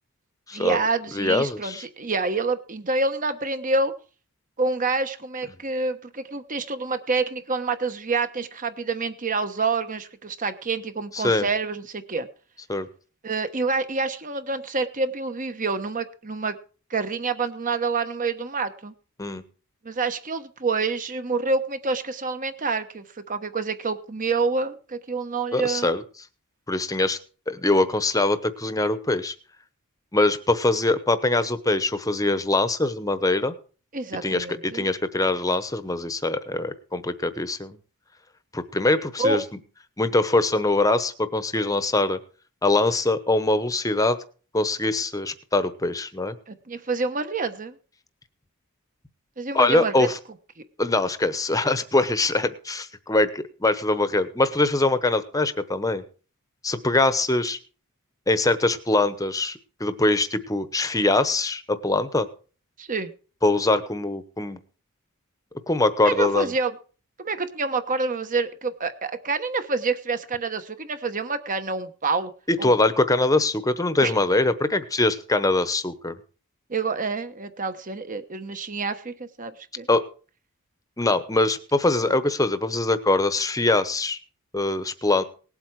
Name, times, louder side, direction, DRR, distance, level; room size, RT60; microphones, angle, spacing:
voice 1, 0.5-3.9 4.6-12.3 13.2-16.6 16.9-18.9 19.8-25.9 33.9-34.9 39.2-39.4 46.5-47.8 49.4-50.1 62.8-63.1 66.0-66.7 67.2-72.3 72.6-72.7 74.0-74.1 76.7-79.9, right 4 dB, 35° right, 10 dB, 1.1 m, -27 dB
voice 2, 1.1-1.8 11.1-11.5 12.7-12.9 19.2-19.4 25.5-26.0 26.7-27.2 27.5-29.3 30.1-33.5 34.2-37.8 38.5-39.4 40.0-42.2 42.6-44.2 44.5-46.4 49.5-50.2 50.8-56.0 56.6-57.6 58.3-62.3 63.4-64.6 65.7-66.5 72.5-76.2 79.9-80.0 81.0-84.2 84.5-85.2, left 2 dB, 15° left, 12 dB, 1.0 m, -23 dB
18.5 x 8.0 x 4.7 m, 0.38 s
head